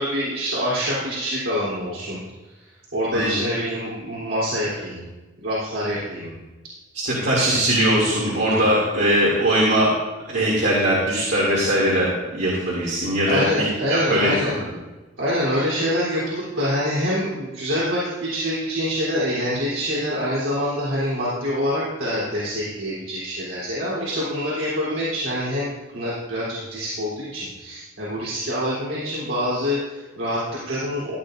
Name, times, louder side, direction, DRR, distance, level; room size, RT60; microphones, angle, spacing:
voice 1, 0.0-2.2 2.9-5.1 5.4-6.4 13.3-14.6 15.2-31.2, equal, 80° right, -8 dB, 3.5 m, -25 dB
voice 2, 6.9-9.9 10.3-12.1 12.3-13.6 13.9-14.3, right 1 dB, 60° right, -6 dB, 2.6 m, -20 dB
15.0 x 10.0 x 2.6 m, 1.2 s
head